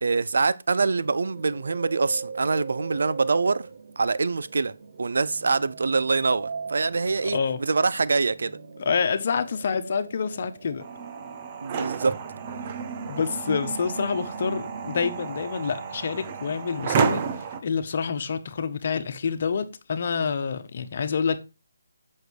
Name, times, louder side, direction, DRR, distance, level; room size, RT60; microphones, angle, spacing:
voice 1, 0.0-3.7 4.0-4.7 5.0-8.6 11.6-12.2, right 4 dB, 65° right, 0.6 m, -24 dB
sound 1, 0.9-15.5, right 5 dB, 50° right, 1.1 m, -42 dB
voice 2, 8.8-10.8 13.0-17.2 17.6-21.4, left 6 dB, 50° left, 1.2 m, -27 dB
sound 2, 10.8-17.6, right 6 dB, 30° right, 1.0 m, -31 dB
8.1 x 6.5 x 4.7 m
figure-of-eight pair, 150°, 0 cm